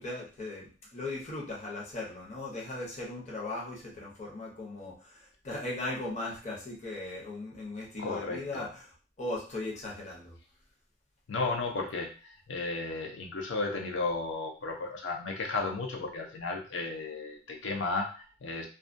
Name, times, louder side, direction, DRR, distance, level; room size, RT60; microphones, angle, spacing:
voice 1, 0.0-8.9 9.2-10.4, left 2 dB, 35° left, -3 dB, 0.8 m, -38 dB
voice 2, 8.0-8.7 11.3-18.7, left 3 dB, 70° left, 2 dB, 0.5 m, -34 dB
2.3 x 2.2 x 2.5 m, 0.35 s
head